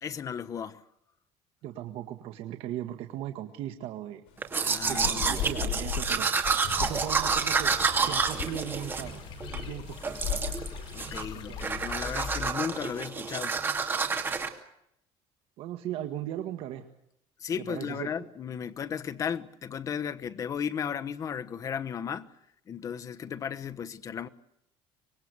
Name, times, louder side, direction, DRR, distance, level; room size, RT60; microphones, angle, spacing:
voice 1, 0.0-0.8 4.6-5.7 10.9-13.5 17.4-22.3 22.7-24.3, left 7 dB, 30° left, 1.2 m, -35 dB
voice 2, 1.6-4.2 4.9-6.3 6.8-9.2 9.5-10.2 11.2-11.7 15.6-16.9 17.6-18.1, right 12 dB, 65° right, 1.7 m, -38 dB
Thunder / Rain, 4.3-11.9, left 9 dB, 80° left, 5.7 m, -38 dB
Domestic sounds home sounds, 4.4-9.6 10.0-10.7 11.0-11.3 11.6-14.5, right 5 dB, 20° right, 2.7 m, -29 dB
sound 1, 6.7-12.5, left 6 dB, 55° left, 5.3 m, -42 dB
25.0 x 21.0 x 8.1 m
cardioid pair, 160°, 10 cm